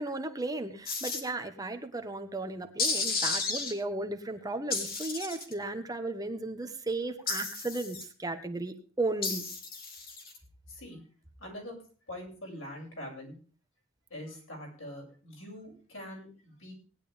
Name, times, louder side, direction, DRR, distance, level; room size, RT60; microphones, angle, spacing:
voice 1, 0.0-9.5, right 2 dB, 20° right, 6 dB, 1.3 m, -35 dB
sound 1, 0.8-1.2 2.8-3.7 4.7-5.5 7.3-8.0 9.2-10.4, left 4 dB, 50° left, 2.8 m, -33 dB
voice 2, 10.7-11.0 11.4-11.7 12.1-13.3 14.1-16.7, left 1 dB, 90° left, 0 dB, 6.8 m, -43 dB
19.0 x 11.0 x 3.5 m, 0.39 s
head